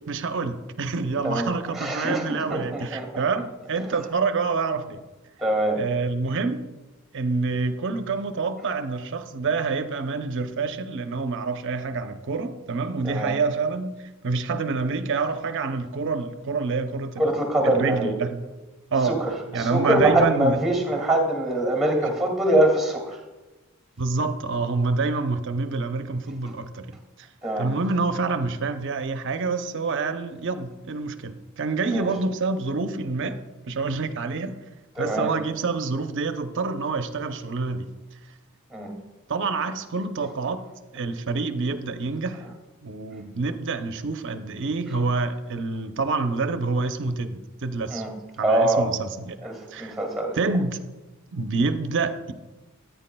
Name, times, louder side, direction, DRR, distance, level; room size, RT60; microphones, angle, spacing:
voice 1, 0.1-5.0 5.8-6.7 7.1-17.4 17.6-18.4 18.9-19.2 19.5-20.6 24.0-27.3 27.6-33.4 33.7-34.6 35.0-37.9 39.3-40.6 40.9-42.4 42.8-48.0 48.4-49.4 49.7-49.9 50.4-50.8 51.3-52.3, right 4 dB, 60° right, 8 dB, 0.7 m, -27 dB
voice 2, 1.2-3.3 3.8-3.9 5.4-5.8 13.0-13.4 17.2-18.1 18.9-23.2 27.4-27.7 31.9-32.1 34.9-35.4 38.7-39.0 47.9-48.9 49.4-50.4, right 1 dB, ahead, 1 dB, 2.1 m, -24 dB
14.5 x 9.2 x 2.3 m, 1.1 s
head